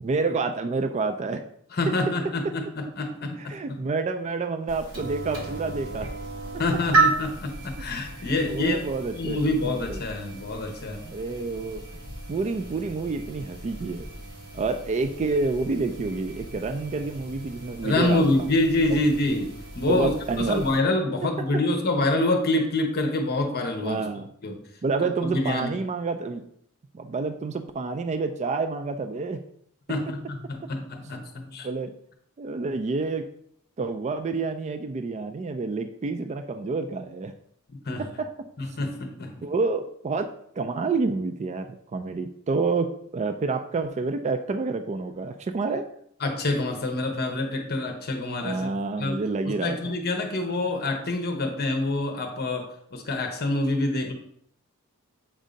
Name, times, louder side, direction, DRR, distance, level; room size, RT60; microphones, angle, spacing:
voice 1, 0.0-1.4 3.4-6.1 8.2-10.0 11.0-11.8 12.3-14.1 14.5-18.5 18.9-19.0 19.9-20.7 21.4-21.6 23.8-24.3 24.8-26.4 26.9-29.4 29.9-30.0 31.6-31.9 32.4-33.3 33.8-37.3 38.0-38.8 39.4-40.3 40.6-45.9 48.4-49.9, right 3 dB, 30° right, 8 dB, 0.3 m, -28 dB
voice 2, 1.7-3.8 6.6-8.8 9.2-11.0 17.8-20.1 20.4-24.1 24.4-24.5 25.3-25.8 29.9-31.7 37.7-38.1 38.6-39.4 46.2-48.7 49.0-49.2 49.6-54.1, left 2 dB, 45° left, 4 dB, 0.9 m, -26 dB
sound 1, 4.7-20.8, right 3 dB, 60° right, 1.9 m, -33 dB
7.4 x 2.7 x 5.0 m, 0.67 s
head